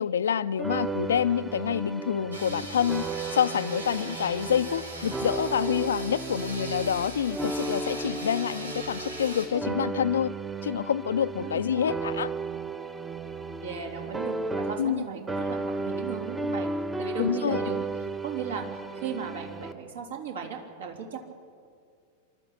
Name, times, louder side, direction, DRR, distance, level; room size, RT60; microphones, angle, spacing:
voice 1, 0.0-3.0 3.3-10.3 10.6-12.3 14.8-15.0 17.2-17.6, left 8 dB, 65° left, 0.5 m, -27 dB
sound 1, 0.6-15.0 15.3-19.7, right 3 dB, 10° right, 1.0 m, -34 dB
sound 2, 2.3-9.5, right 1 dB, 80° right, 4.0 m, -40 dB
voice 2, 11.4-11.9 13.6-16.7 17.0-17.8 18.2-18.7 18.9-21.2, right 6 dB, 65° right, 3.4 m, -36 dB
27.5 x 12.5 x 8.7 m
figure-of-eight pair, 90°, 0 cm